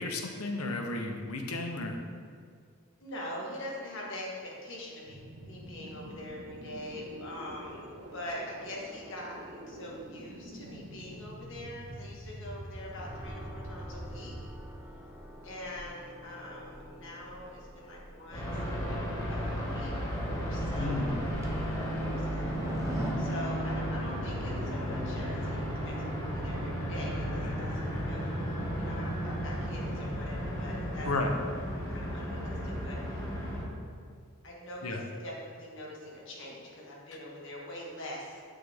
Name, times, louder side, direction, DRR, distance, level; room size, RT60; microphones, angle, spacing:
voice 1, 0.0-2.0 20.7-21.1 27.4-27.5 31.1-31.3 34.8-35.0, left 2 dB, 90° left, 3 dB, 1.0 m, -33 dB
voice 2, 3.0-7.8 8.1-14.3 15.4-19.0 19.3-19.9 20.3-21.2 21.5-31.1 31.9-33.2 34.4-38.4, left 1 dB, 60° left, -4 dB, 2.0 m, -43 dB
sound 1, 5.1-14.5, equal, 85° right, 1.5 m, -45 dB
sound 2, 13.0-23.1, equal, 15° right, 1.0 m, -45 dB
sound 3, 18.3-33.6, equal, 15° left, 1.9 m, -34 dB
9.1 x 6.6 x 3.7 m, 2.1 s
head